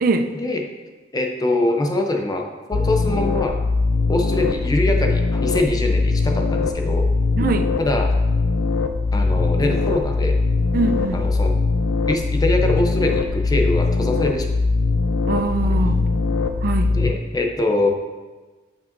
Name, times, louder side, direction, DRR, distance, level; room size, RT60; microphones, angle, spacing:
voice 1, 0.0-0.3 7.4-7.7 10.7-11.3 15.3-16.0 16.6-17.0, right 3 dB, 50° right, 7 dB, 0.4 m, -22 dB
voice 2, 1.1-3.6 4.1-7.1 7.8-8.1 9.1-10.4 11.1-11.5 12.1-14.4 15.6-15.9 16.9-17.9, left 2 dB, 20° left, 3 dB, 0.6 m, -23 dB
sound 1, 2.7-17.1, left 3 dB, 85° left, 0.4 m, -21 dB
7.2 x 5.5 x 2.6 m, 1.3 s
head